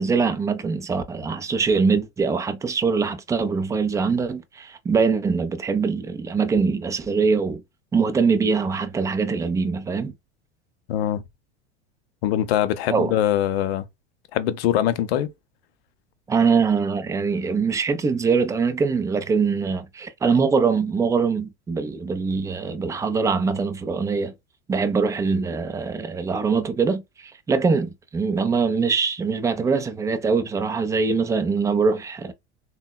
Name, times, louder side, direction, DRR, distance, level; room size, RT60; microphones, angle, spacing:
voice 1, 0.0-7.6 7.9-10.1 12.9-13.1 16.3-24.3 24.7-32.3, right 5 dB, 10° right, 0.3 m, -23 dB
voice 2, 10.9-11.2 12.2-13.9 14.3-15.3, left 11 dB, 65° left, 0.6 m, -22 dB
3.5 x 2.1 x 2.2 m
hypercardioid pair, 90°, 34 cm